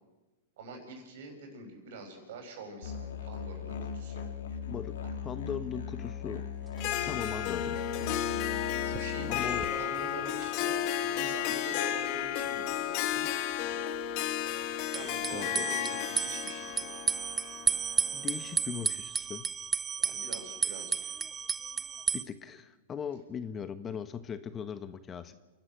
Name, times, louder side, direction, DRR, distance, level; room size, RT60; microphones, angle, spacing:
voice 1, 0.6-4.2 5.0-5.1 8.7-13.2 14.9-16.9 20.0-21.2, right 2 dB, 65° right, 4 dB, 7.1 m, -45 dB
Musical instrument, 2.8-9.7, left 8 dB, 80° left, 2.3 m, -39 dB
voice 2, 5.2-6.5 7.0-7.8 9.3-9.7 15.3-15.7 18.1-19.5 22.1-25.3, left 7 dB, 25° left, 12 dB, 1.2 m, -39 dB
sound 1, 6.4-6.5 6.8-6.9 7.1-7.2 7.9-8.3 8.5-10.5 10.8-10.9 14.9-22.2, right 7 dB, 20° right, 0.7 m, -33 dB
Harp, 6.8-18.6, left 10 dB, 45° left, 1.5 m, -33 dB
29.0 x 12.0 x 7.9 m, 1.2 s
hypercardioid pair, 125°, 0 cm